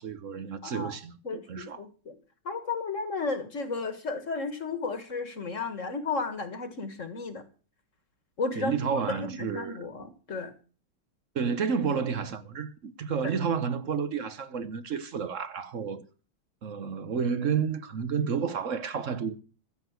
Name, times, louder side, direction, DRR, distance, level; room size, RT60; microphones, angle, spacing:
voice 1, 0.0-1.8 8.6-9.9 11.3-16.0 16.6-19.3, right 6 dB, 50° right, 1.0 m, -31 dB
voice 2, 0.6-1.0 1.2-2.2 2.5-7.4 8.4-8.7 9.1-10.5 13.2-13.3, left 4 dB, 40° left, 1.8 m, -33 dB
15.0 x 8.0 x 8.0 m
omnidirectional pair, 2.3 m